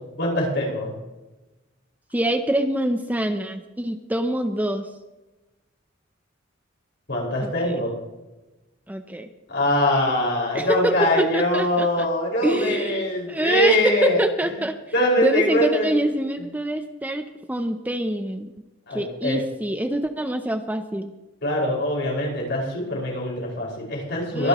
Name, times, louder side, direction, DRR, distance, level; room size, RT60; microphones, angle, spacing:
voice 1, 0.2-0.9 7.1-7.9 9.5-14.2 14.9-16.0 18.9-19.4 21.4-24.5, left 1 dB, 60° left, -3 dB, 5.4 m, -23 dB
voice 2, 2.1-4.9 7.4-7.8 8.9-9.3 10.5-12.1 12.4-14.8 15.2-18.5 18.9-21.1 24.3-24.5, right 1 dB, 10° right, 7 dB, 0.6 m, -25 dB
23.0 x 11.0 x 3.0 m, 1.1 s
head